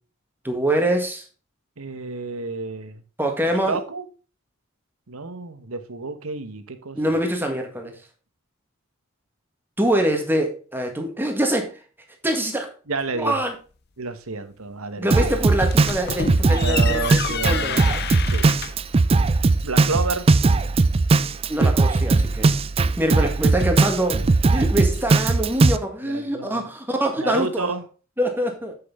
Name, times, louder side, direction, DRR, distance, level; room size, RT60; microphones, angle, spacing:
voice 1, 0.4-1.2 3.2-3.8 7.0-7.9 9.8-11.8 12.2-12.7 13.1-13.5 15.0-18.0 21.5-22.5 23.0-24.2 24.5-27.7 28.2-28.8, right 1 dB, 10° right, 1.7 m, -24 dB
voice 2, 1.8-3.0 3.6-4.0 5.1-7.1 12.9-13.4 14.0-15.2 16.4-18.5 19.6-20.3 26.1-26.6 27.2-27.8, right 3 dB, 85° right, 1.2 m, -30 dB
Drum kit, 15.1-25.8, right 3 dB, 25° right, 0.4 m, -19 dB
sound 1, 15.6-18.9, left 7 dB, 50° left, 0.6 m, -29 dB
7.8 x 6.7 x 3.6 m
head